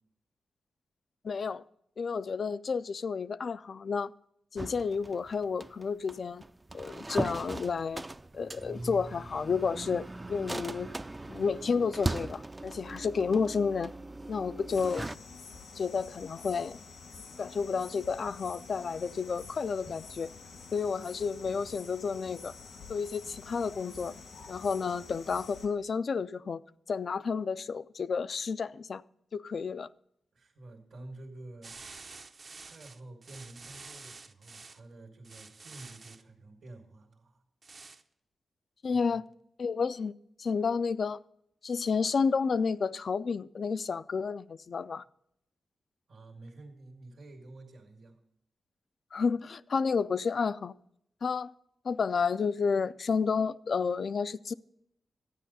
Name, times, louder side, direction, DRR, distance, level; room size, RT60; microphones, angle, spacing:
voice 1, 1.2-1.6 2.0-4.1 4.5-6.4 6.7-8.1 8.3-10.9 11.3-13.9 14.3-15.1 15.7-16.8 17.4-20.3 20.7-22.5 22.9-24.1 24.5-26.6 26.9-29.0 29.3-29.9 38.8-39.2 39.6-40.1 40.4-41.2 41.6-45.0 49.1-50.7 51.2-51.5 51.8-54.5, left 5 dB, 60° left, 0.3 m, -31 dB
sound 1, 4.6-15.2, right 2 dB, 25° right, 0.3 m, -39 dB
sound 2, 14.7-25.7, left 4 dB, 85° left, 2.1 m, -48 dB
voice 2, 30.3-31.8 32.6-37.4 38.9-39.2 46.1-48.2, right 2 dB, 75° right, 1.8 m, -50 dB
sound 3, 31.6-34.8 35.2-36.2 37.6-38.0, right 4 dB, 55° right, 0.6 m, -49 dB
12.5 x 9.1 x 4.1 m
cardioid pair, 60°, 0 cm